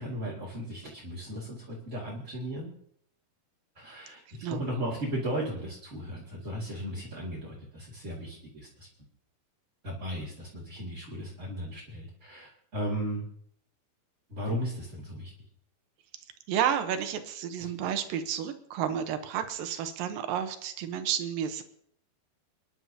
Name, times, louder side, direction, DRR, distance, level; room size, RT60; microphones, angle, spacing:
voice 1, 0.0-2.7 3.8-8.9 9.8-13.3 14.3-15.3 17.6-17.7, equal, 25° right, -8 dB, 2.0 m, -36 dB
voice 2, 16.5-21.6, right 9 dB, 75° right, 9 dB, 2.6 m, -31 dB
29.0 x 10.5 x 2.8 m, 0.70 s
omnidirectional pair, 4.4 m